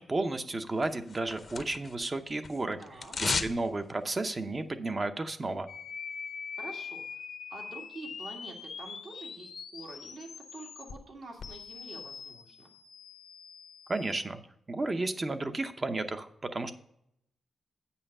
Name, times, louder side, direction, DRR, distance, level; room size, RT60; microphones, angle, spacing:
voice 1, 0.0-2.8 3.2-5.7 13.9-14.4 14.7-16.7, right 2 dB, 30° right, 8 dB, 0.7 m, -32 dB
sound 1, 0.8-2.1 2.3-3.6 3.9-4.0, left 4 dB, 45° left, 0.6 m, -34 dB
voice 2, 2.8-3.2 6.5-7.2 7.5-12.7, right 2 dB, 65° right, 0 dB, 2.1 m, -47 dB
sound 2, 5.7-11.0 11.4-14.2, left 6 dB, 80° left, 0.8 m, -43 dB
8.8 x 5.6 x 5.4 m, 0.75 s
cardioid pair, 100°, 0 cm